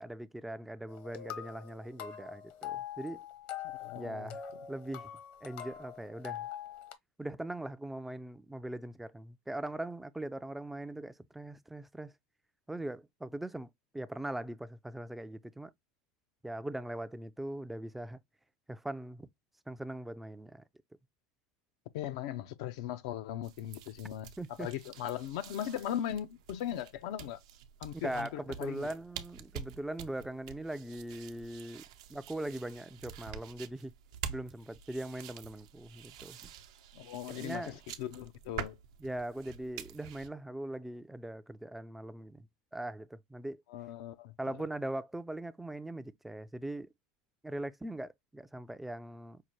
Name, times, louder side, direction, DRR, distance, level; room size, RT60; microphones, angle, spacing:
voice 1, 0.0-3.2 3.9-4.4 4.7-5.1 5.4-6.5 7.2-12.1 12.7-15.7 16.4-18.2 18.7-19.3 19.7-20.6 24.4-24.7 27.9-31.8 32.1-33.9 34.3-36.4 37.3-37.8 39.0-42.5 42.7-43.6 44.4-46.9 47.4-49.4, right 1 dB, 5° right, 0.3 m, -40 dB
sound 1, 0.9-6.9, left 10 dB, 60° left, 0.8 m, -44 dB
voice 2, 3.8-4.4 21.9-24.3 24.6-27.4 27.8-28.9 36.9-38.8 43.7-44.3, left 11 dB, 75° left, 0.4 m, -38 dB
sound 2, 23.4-40.3, right 8 dB, 80° right, 0.7 m, -47 dB
5.5 x 2.2 x 3.0 m
supercardioid pair, 120°, 3 cm